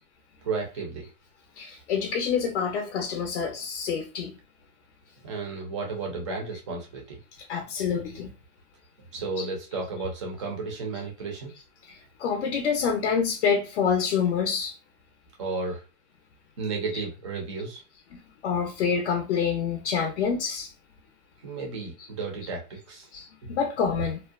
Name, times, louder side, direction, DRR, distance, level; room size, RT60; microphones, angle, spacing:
voice 1, 0.4-1.1 5.2-7.2 9.1-11.5 15.4-15.8 16.6-17.8 21.4-23.1, right 4 dB, 25° right, 0.4 m, -33 dB
voice 2, 1.6-4.3 7.5-8.3 9.4-9.5 11.9-14.7 18.1-20.7 23.1-24.2, left 6 dB, 50° left, 0.5 m, -27 dB
2.6 x 2.0 x 2.3 m
hypercardioid pair, 145°, 44 cm